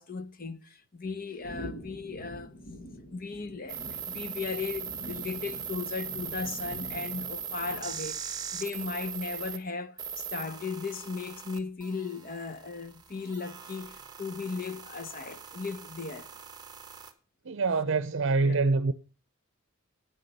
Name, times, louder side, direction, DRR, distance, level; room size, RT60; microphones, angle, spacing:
voice 1, 0.0-2.5 3.1-16.4 18.4-18.6, left 4 dB, 45° left, 0.9 m, -37 dB
sound 1, 1.4-8.2, equal, 65° left, 1.6 m, -45 dB
sound 2, 3.7-9.6 10.0-17.1, right 7 dB, 20° right, 1.3 m, -40 dB
voice 2, 17.4-18.9, right 3 dB, 65° right, 0.7 m, -25 dB
10.0 x 9.3 x 6.7 m
head